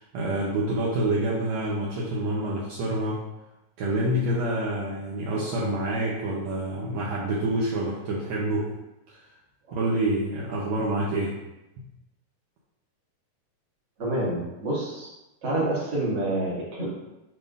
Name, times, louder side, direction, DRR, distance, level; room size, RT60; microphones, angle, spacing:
voice 1, 0.1-3.2 3.8-8.7 9.1-9.2 9.7-11.3, right 1 dB, 75° right, -5 dB, 1.6 m, -27 dB
voice 2, 14.0-15.1 15.4-16.9, right 1 dB, 35° right, -7 dB, 2.1 m, -27 dB
11.0 x 3.6 x 2.6 m, 0.96 s
omnidirectional pair, 4.2 m